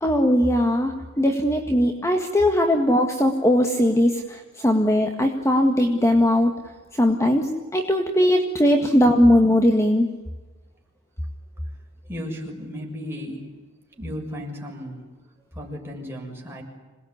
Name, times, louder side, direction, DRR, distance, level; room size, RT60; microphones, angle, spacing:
voice 1, 0.0-6.5 6.9-10.1, left 1 dB, 15° left, 4 dB, 1.8 m, -19 dB
voice 2, 12.1-13.4 14.0-15.0 15.5-16.6, equal, 10° right, -1 dB, 6.7 m, -34 dB
27.0 x 20.0 x 9.7 m, 1.2 s
head